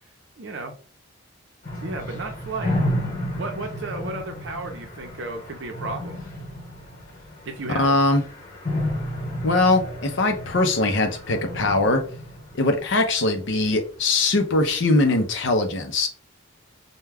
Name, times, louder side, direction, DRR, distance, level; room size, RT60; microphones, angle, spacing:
voice 1, 0.4-0.7 1.8-2.8 3.4-6.2 7.4-7.9, right 3 dB, 60° right, 0.6 m, -33 dB
sound 1, 1.6-13.7, left 1 dB, 40° left, 1.1 m, -32 dB
voice 2, 7.7-8.2 9.4-12.0 12.5-16.1, left 2 dB, 60° left, 0.5 m, -21 dB
2.2 x 2.2 x 3.3 m
head